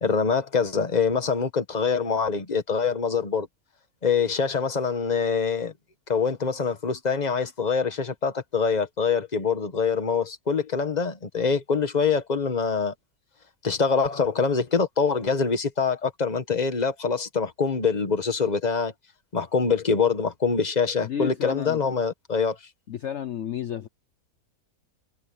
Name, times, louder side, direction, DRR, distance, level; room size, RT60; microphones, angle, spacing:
voice 1, 0.0-3.5 4.0-5.7 6.1-12.9 13.6-18.9 19.3-22.6, left 5 dB, 30° left, 1.5 m, -24 dB
voice 2, 21.0-21.8 22.9-23.9, left 8 dB, 55° left, 1.1 m, -32 dB
omnidirectional pair, 1.6 m